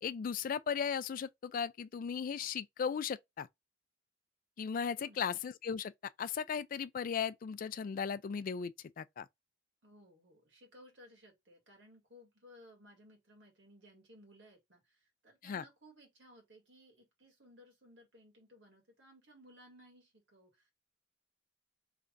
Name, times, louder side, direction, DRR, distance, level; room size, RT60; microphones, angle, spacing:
voice 1, 0.0-3.5 4.6-5.9 6.2-9.3 15.4-15.6, left 7 dB, 45° left, 0.3 m, -37 dB
voice 2, 4.9-5.3 9.8-20.7, equal, 65° right, 1.8 m, -60 dB
3.3 x 2.5 x 3.8 m
head